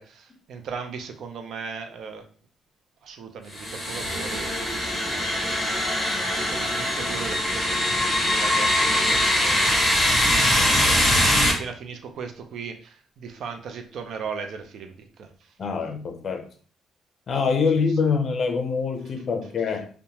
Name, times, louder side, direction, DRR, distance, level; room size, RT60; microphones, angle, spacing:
voice 1, 0.0-2.2 3.0-4.5 5.1-10.1 10.4-15.5, right 6 dB, 70° right, 6 dB, 0.4 m, -38 dB
sound 1, 3.5-11.5, left 1 dB, 10° left, 1.1 m, -22 dB
voice 2, 15.6-16.5 17.3-19.9, left 5 dB, 50° left, 5 dB, 0.5 m, -24 dB
2.8 x 2.1 x 2.7 m, 0.42 s
cardioid pair, 90°, 0 cm